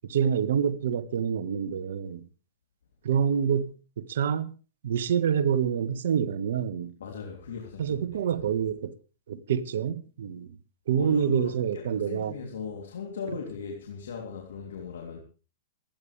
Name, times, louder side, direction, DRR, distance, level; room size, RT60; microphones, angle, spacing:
voice 1, 0.1-2.2 3.0-4.5 4.8-6.9 7.8-8.9 9.3-10.6 10.9-12.3, right 8 dB, 75° right, 1.6 m, -27 dB
voice 2, 7.0-8.4 10.9-15.2, left 5 dB, 80° left, 3.3 m, -38 dB
27.5 x 10.5 x 3.5 m
hypercardioid pair, 120°, 0 cm